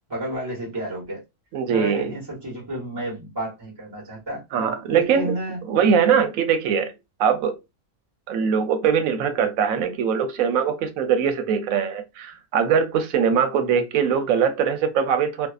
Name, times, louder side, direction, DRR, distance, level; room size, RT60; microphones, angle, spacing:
voice 1, 0.1-1.2 1.7-4.4 4.9-5.6, right 1 dB, 20° right, 1.1 m, -31 dB
voice 2, 1.5-2.1 4.5-5.3 5.7-6.9 7.2-7.6 8.3-15.5, right 7 dB, 85° right, 1.0 m, -21 dB
2.6 x 2.3 x 2.3 m
omnidirectional pair, 1.4 m